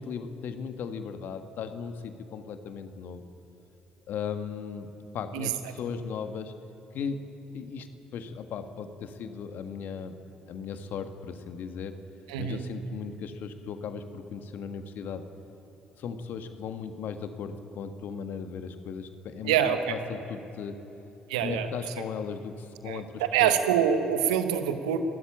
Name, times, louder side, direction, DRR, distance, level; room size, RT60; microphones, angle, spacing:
voice 1, 0.0-3.2 4.1-4.9 5.1-6.6 6.9-10.2 10.5-12.0 12.4-15.3 16.0-20.8 21.4-23.5, left 6 dB, 55° left, 8 dB, 1.6 m, -37 dB
voice 2, 12.3-12.6 19.4-20.0 21.3-21.7 22.9-25.0, right 9 dB, 75° right, 8 dB, 1.3 m, -25 dB
28.5 x 13.0 x 8.9 m, 3.0 s
figure-of-eight pair, 50°, 4 cm